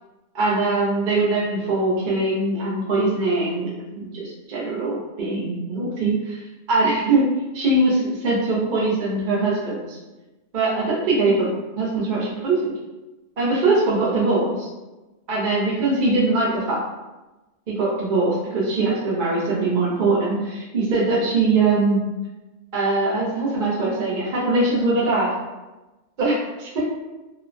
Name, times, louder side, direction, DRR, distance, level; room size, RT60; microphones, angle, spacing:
voice 1, 0.3-6.4 6.7-7.2 7.5-10.0 10.5-11.5 11.8-12.7 13.4-14.7 15.3-16.8 17.7-22.0 22.7-25.3 26.2-26.8, right 3 dB, 50° right, -7 dB, 0.7 m, -22 dB
3.1 x 2.1 x 2.4 m, 1.1 s
omnidirectional pair, 1.4 m